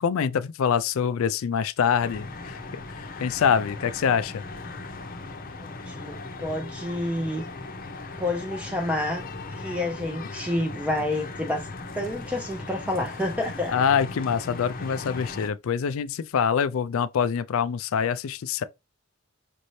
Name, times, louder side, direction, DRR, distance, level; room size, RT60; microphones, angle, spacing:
voice 1, 0.0-2.6 3.0-4.4 13.7-18.6, left 7 dB, 60° left, 0.3 m, -25 dB
sound 1, 2.0-15.5, left 3 dB, 40° left, 0.7 m, -38 dB
voice 2, 5.6-7.4 8.2-9.3 9.5-11.7 11.9-13.7, left 1 dB, 5° right, 0.5 m, -29 dB
5.2 x 2.7 x 3.1 m
head